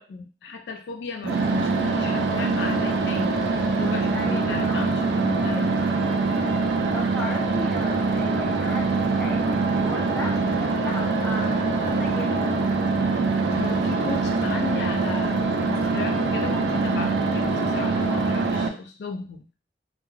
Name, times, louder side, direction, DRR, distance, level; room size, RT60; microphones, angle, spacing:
voice 1, 0.0-3.4 3.8-5.7 13.5-19.5, left 4 dB, 70° left, 5 dB, 0.3 m, -35 dB
sound 1, 1.2-18.7, right 3 dB, 75° right, 0.4 m, -24 dB
voice 2, 4.1-4.8 6.9-12.6, left 1 dB, 5° left, -5 dB, 0.7 m, -36 dB
2.3 x 2.2 x 3.1 m, 0.36 s
head